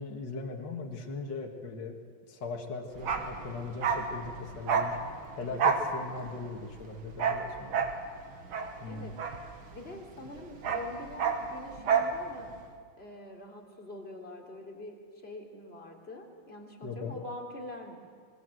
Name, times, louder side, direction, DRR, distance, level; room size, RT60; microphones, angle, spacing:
voice 1, 0.0-2.0 2.3-5.0 5.4-7.8 8.8-9.2 16.8-17.2, left 4 dB, 55° left, 1 dB, 2.5 m, -39 dB
Bark, 3.0-10.0 10.3-12.2 12.4-12.6, right 6 dB, 80° right, 2.5 m, -30 dB
voice 2, 9.7-12.5 12.9-18.0, left 2 dB, 30° left, 0 dB, 3.6 m, -44 dB
24.5 x 22.5 x 7.8 m, 2.1 s
omnidirectional pair, 2.3 m